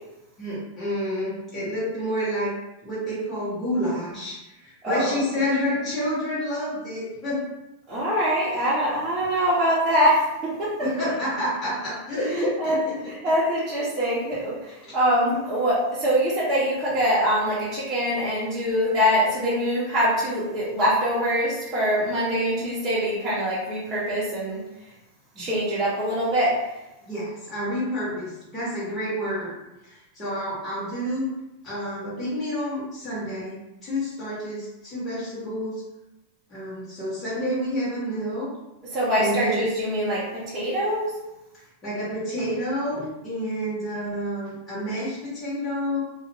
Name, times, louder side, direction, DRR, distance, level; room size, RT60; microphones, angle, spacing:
voice 1, 0.4-2.5 2.8-7.5 10.8-13.3 14.8-14.9 25.3-25.5 27.1-29.5 29.8-31.3 31.6-35.8 36.5-38.5 39.2-39.6 41.8-46.0, equal, 15° left, -11 dB, 1.1 m, -29 dB
voice 2, 4.8-5.2 7.9-10.7 12.6-12.8 13.1-24.6 25.4-26.5 38.9-41.1, equal, 25° right, -9 dB, 0.7 m, -23 dB
2.4 x 2.4 x 2.9 m, 0.96 s
supercardioid pair, 155°, 0 cm